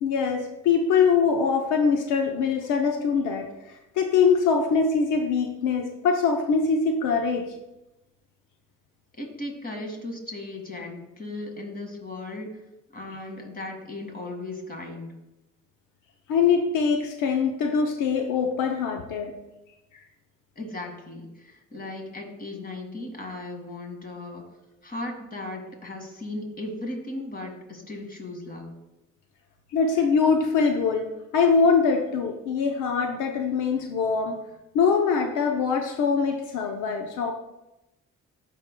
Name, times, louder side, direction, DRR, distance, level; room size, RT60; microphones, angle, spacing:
voice 1, 0.0-3.5 4.0-7.5 16.3-19.4 29.7-34.4 34.7-37.3, left 5 dB, 85° left, 4 dB, 0.7 m, -23 dB
voice 2, 9.1-12.5 12.9-15.1 20.6-24.4 24.8-28.7, left 2 dB, 30° left, 2 dB, 1.9 m, -36 dB
13.0 x 5.4 x 2.2 m, 0.96 s
cardioid pair, 90°, 30 cm